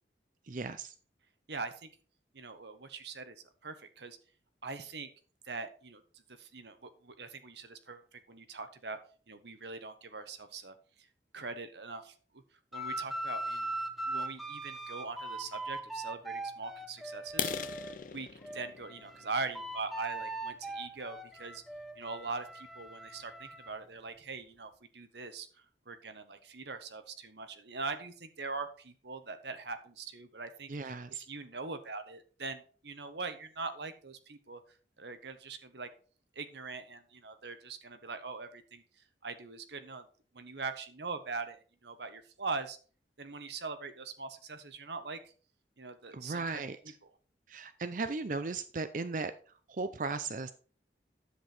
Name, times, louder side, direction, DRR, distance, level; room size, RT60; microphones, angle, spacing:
voice 1, 0.5-0.9 30.7-31.2 46.1-46.8 47.5-49.3 49.7-50.5, right 3 dB, 45° right, 11 dB, 0.5 m, -36 dB
voice 2, 1.5-1.9 2.3-4.2 4.6-5.1 5.4-9.0 9.3-10.7 11.3-12.4 12.7-13.8 14.1-17.5 18.1-21.6 22.0-35.9 36.3-38.8 39.2-40.1 40.3-42.8 43.2-45.3 45.8-47.1, right 4 dB, 70° right, 9 dB, 1.3 m, -42 dB
sound 1, 12.7-18.0 18.4-23.7, right 2 dB, ahead, 0.9 m, -40 dB
sound 2, 17.3-21.0 21.6-21.8 22.2-22.3 22.7-22.9 23.2-23.3 23.8-23.9 24.1-24.6, left 7 dB, 45° left, 0.7 m, -41 dB
10.0 x 7.9 x 4.4 m, 0.40 s
head